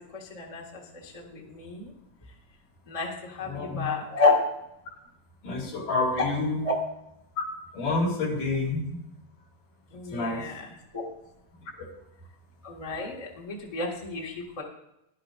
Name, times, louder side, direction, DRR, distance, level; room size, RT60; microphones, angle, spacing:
voice 1, 0.1-1.9 2.9-4.4 6.2-6.3 6.6-6.7 9.9-10.7 10.9-11.0 12.6-14.6, left 3 dB, 25° left, -3 dB, 0.8 m, -30 dB
voice 2, 3.4-3.8 5.4-6.7 7.4-7.5 7.7-9.0 10.1-10.4 11.8-11.9, left 3 dB, 70° left, -2 dB, 3.6 m, -28 dB
15.5 x 11.0 x 2.5 m, 0.84 s
omnidirectional pair, 3.9 m